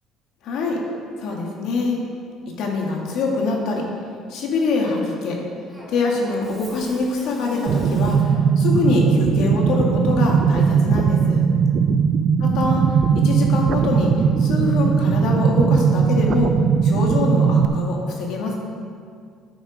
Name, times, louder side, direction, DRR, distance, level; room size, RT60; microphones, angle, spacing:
voice 1, 0.4-0.8 1.2-2.0 2.6-3.8 4.3-5.4 5.9-11.4 12.4-12.8 13.1-14.1 14.4-16.5 16.8-18.5, left 3 dB, 70° left, -1 dB, 1.9 m, -24 dB
Cough, 5.7-8.6, equal, ahead, 2.7 m, -43 dB
sound 1, 7.7-17.7, right 6 dB, 55° right, 0.5 m, -18 dB
10.5 x 6.4 x 5.1 m, 2.2 s
cardioid pair, 120°, 0 cm